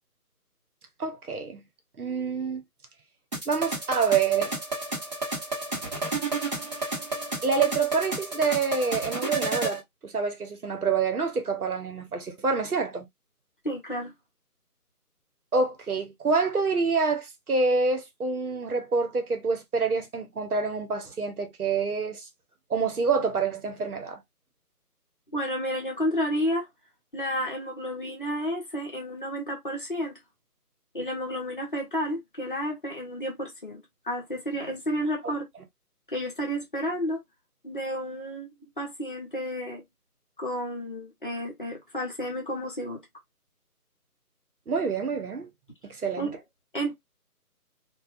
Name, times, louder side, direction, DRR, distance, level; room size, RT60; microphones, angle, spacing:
voice 1, 1.0-1.6 2.0-2.6 3.5-4.5 7.4-13.1 15.5-22.3 22.7-24.2 44.7-45.5 45.8-46.3, right 4 dB, 65° right, 0.9 m, -27 dB
sound 1, 3.3-9.8, right 3 dB, 25° right, 1.0 m, -31 dB
voice 2, 13.6-14.1 25.3-26.7 27.1-30.2 30.9-35.5 36.1-37.2 37.6-39.8 40.4-43.0 46.2-46.4 46.7-46.9, equal, 35° left, 0.8 m, -31 dB
2.7 x 2.3 x 2.4 m
figure-of-eight pair, 160°, 47 cm